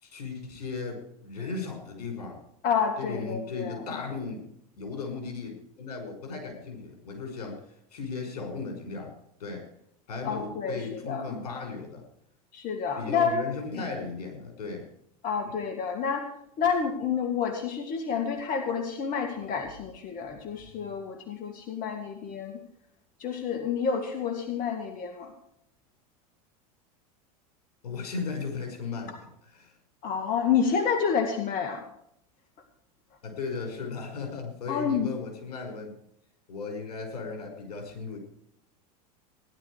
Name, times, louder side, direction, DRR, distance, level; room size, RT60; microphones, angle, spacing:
voice 1, 0.0-2.4 3.0-4.4 4.8-7.6 7.9-9.7 10.1-12.0 13.0-14.9 27.8-29.1 29.5-29.7 33.2-35.9 36.5-38.2, left 4 dB, 80° left, 4 dB, 5.7 m, -36 dB
voice 2, 2.6-3.9 10.2-11.4 12.5-13.4 15.2-16.3 16.6-22.6 23.2-25.3 30.0-31.8 34.7-35.1, left 6 dB, 45° left, 6 dB, 2.2 m, -29 dB
17.0 x 11.5 x 4.9 m, 0.73 s
hypercardioid pair, 95°, 20 cm